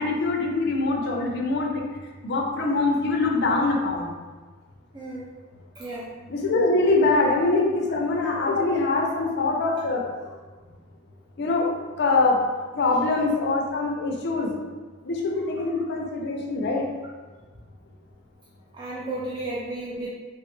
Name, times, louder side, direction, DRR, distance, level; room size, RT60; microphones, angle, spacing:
voice 1, 0.0-1.8 2.2-4.1 6.3-10.0 11.4-11.7 12.0-12.4 12.7-14.6 15.0-16.8, left 3 dB, 50° left, 0 dB, 0.4 m, -23 dB
voice 2, 5.8-6.1 18.7-20.1, right 2 dB, 20° right, -7 dB, 0.3 m, -33 dB
3.1 x 2.2 x 3.0 m, 1.4 s
head